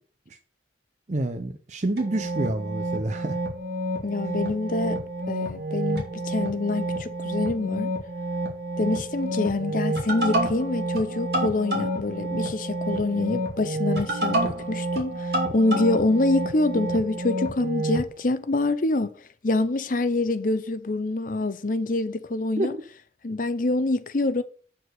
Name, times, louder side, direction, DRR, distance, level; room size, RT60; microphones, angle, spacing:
voice 1, 1.1-3.4 22.6-22.7, right 2 dB, 40° right, 0.6 m, -28 dB
sound 1, 2.0-18.1, right 1 dB, 60° right, 2.7 m, -29 dB
voice 2, 4.0-5.0 5.3-7.9 8.8-19.1 19.4-22.7 23.2-24.4, left 2 dB, 50° left, 0.7 m, -26 dB
8.3 x 4.6 x 6.4 m
head